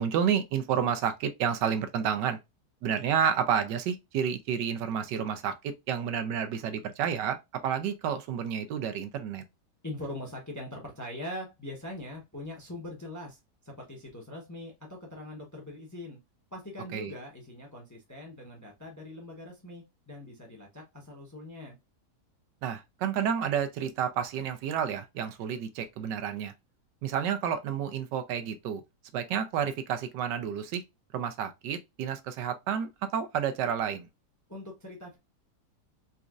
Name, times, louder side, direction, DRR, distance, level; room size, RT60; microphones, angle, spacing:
voice 1, 0.0-2.4 2.8-9.4 16.9-17.1 22.6-26.5 27.0-28.8 29.1-30.8 31.1-34.1, right 8 dB, 85° right, 1.3 m, -30 dB
voice 2, 9.8-13.4 13.6-16.2 16.5-21.8 34.5-35.2, left 1 dB, 15° left, 0.6 m, -42 dB
4.1 x 2.5 x 2.3 m
omnidirectional pair, 1.8 m